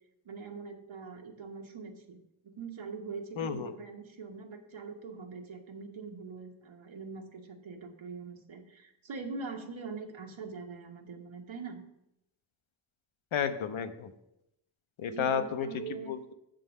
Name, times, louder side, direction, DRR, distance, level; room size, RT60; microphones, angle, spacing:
voice 1, 0.2-11.8 15.1-16.1, right 4 dB, 75° right, 1 dB, 1.3 m, -43 dB
voice 2, 3.4-3.7 13.3-14.1 15.0-15.7 16.1-16.3, left 7 dB, 80° left, 9 dB, 0.8 m, -32 dB
8.0 x 3.9 x 6.3 m, 0.84 s
wide cardioid pair, 160°, 47 cm